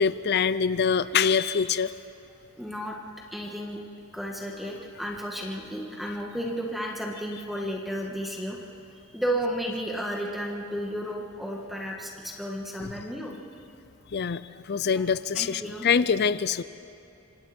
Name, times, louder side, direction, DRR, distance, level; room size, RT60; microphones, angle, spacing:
voice 1, 0.0-1.9 12.8-12.9 14.1-16.6, left 6 dB, 50° left, 15 dB, 0.5 m, -24 dB
voice 2, 2.6-2.9 3.3-3.8 4.1-8.6 9.1-13.3 14.8-15.0 15.3-15.9, equal, ahead, -1 dB, 1.8 m, -33 dB
26.5 x 26.0 x 4.4 m, 2.9 s
head